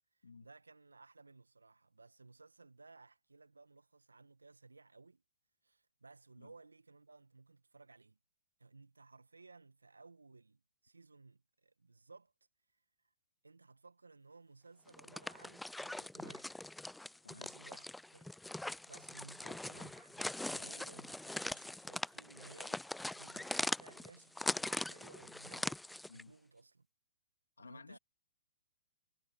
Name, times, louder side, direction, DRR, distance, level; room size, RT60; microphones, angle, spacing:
voice 1, 0.1-5.2 5.6-8.2 8.6-12.3 13.4-16.7 17.3-18.3 18.8-25.8 26.1-26.9 27.6-28.0, right 3 dB, 85° right, 1.4 m, -59 dB
sound 1, 14.9-26.2, left 1 dB, 5° left, 0.5 m, -42 dB
voice 2, 17.2-17.6 26.1-26.4 27.6-28.0, left 5 dB, 80° left, 2.6 m, -55 dB
figure-of-eight pair, 120°, 0 cm